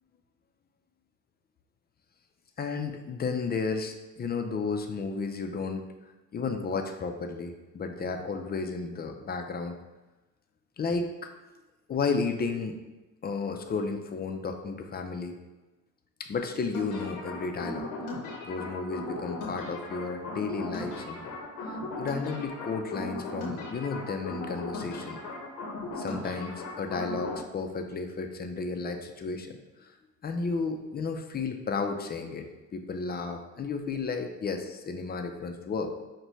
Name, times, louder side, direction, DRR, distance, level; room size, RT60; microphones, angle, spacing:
voice 1, 2.6-5.8 6.3-9.8 10.8-11.3 11.9-12.8 13.2-15.4 16.2-17.9 18.4-21.4 21.7-25.2 26.0-29.6 30.2-32.5 32.7-35.9, left 4 dB, 35° left, 6 dB, 0.4 m, -33 dB
sound 1, 16.7-27.4, left 2 dB, 85° left, 0.8 m, -37 dB
5.2 x 2.2 x 3.1 m, 1.1 s
cardioid pair, 90°, 30 cm